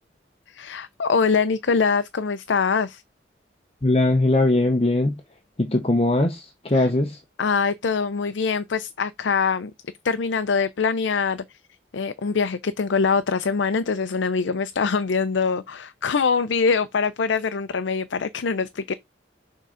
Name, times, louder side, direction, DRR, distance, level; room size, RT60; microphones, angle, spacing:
voice 1, 0.5-3.0 6.7-6.9 7.4-9.7 10.0-11.6 11.9-18.9, left 5 dB, 80° left, 0.5 m, -23 dB
voice 2, 3.8-5.2 5.6-7.2, left 2 dB, 30° left, 0.8 m, -20 dB
6.7 x 3.7 x 4.9 m
head